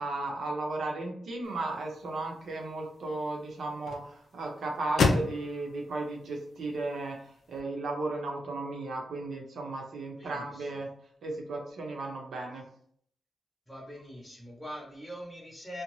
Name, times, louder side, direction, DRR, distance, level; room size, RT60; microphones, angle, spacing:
voice 1, 0.0-10.9 11.2-12.6, right 2 dB, 80° right, 0 dB, 0.7 m, -35 dB
sound 1, 1.4-7.6, left 3 dB, 70° left, 0.4 m, -34 dB
voice 2, 10.2-10.7 13.7-15.8, equal, ahead, -4 dB, 0.9 m, -43 dB
2.6 x 2.1 x 3.0 m, 0.62 s
cardioid pair, 90°, 0 cm